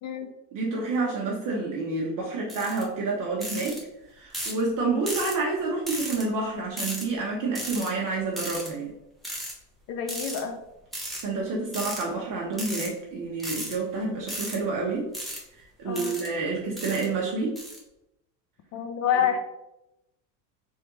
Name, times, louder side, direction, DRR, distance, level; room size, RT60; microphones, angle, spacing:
voice 1, 0.0-0.3 9.9-10.6 15.8-16.2 18.7-19.4, left 8 dB, 35° left, 5 dB, 0.4 m, -28 dB
voice 2, 0.5-3.8 4.1-8.9 11.2-15.1 15.5-17.6 19.1-19.4, right 3 dB, 40° right, -3 dB, 1.0 m, -29 dB
sound 1, 2.5-2.8 3.4-3.8 4.3-4.6 5.1-5.4 5.9-6.2 6.8-7.0 7.5-7.9 8.4-8.7 9.2-9.5 10.1-10.4 10.9-11.2 11.7-12.0 12.5-12.9 13.4-13.7 14.3-14.6 15.1-15.4 15.9-16.3 16.8-17.1 17.6-17.8, right 1 dB, ahead, 0.9 m, -34 dB
3.6 x 3.4 x 3.0 m, 0.88 s
hypercardioid pair, 95°, 50 cm